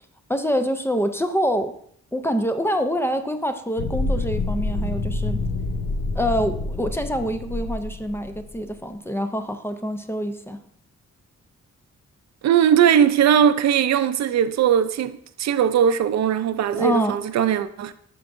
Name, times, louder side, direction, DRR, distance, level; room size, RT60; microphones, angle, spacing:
voice 1, 0.3-1.7 2.1-5.4 6.2-10.6 16.8-17.2, equal, 10° left, 0.4 m, -25 dB
sound 1, 3.8-8.5, left 2 dB, 60° left, 0.7 m, -27 dB
voice 2, 12.4-17.9, right 9 dB, 65° right, 0.4 m, -19 dB
11.5 x 4.7 x 2.5 m
wide cardioid pair, 170°, 30 cm